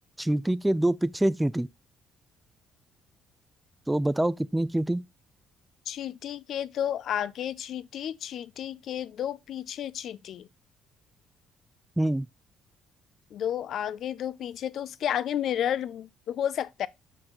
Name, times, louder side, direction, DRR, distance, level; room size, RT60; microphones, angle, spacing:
voice 1, 0.2-1.7 3.9-5.0 12.0-12.3, right 1 dB, 10° right, 0.4 m, -25 dB
voice 2, 5.9-10.5 13.3-16.9, left 10 dB, 65° left, 0.3 m, -32 dB
5.7 x 4.6 x 3.7 m
supercardioid pair, 75°, 0 cm